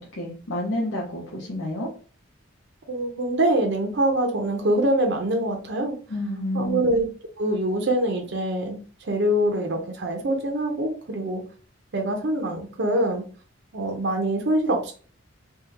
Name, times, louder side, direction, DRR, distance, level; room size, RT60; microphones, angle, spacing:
voice 1, 0.1-1.9 6.1-6.9, left 1 dB, 90° left, -3 dB, 0.8 m, -29 dB
voice 2, 2.9-6.0 6.5-7.1 7.4-11.4 11.9-13.2 13.7-14.9, right 1 dB, 60° right, 2 dB, 0.7 m, -24 dB
3.5 x 2.3 x 2.8 m, 0.39 s
head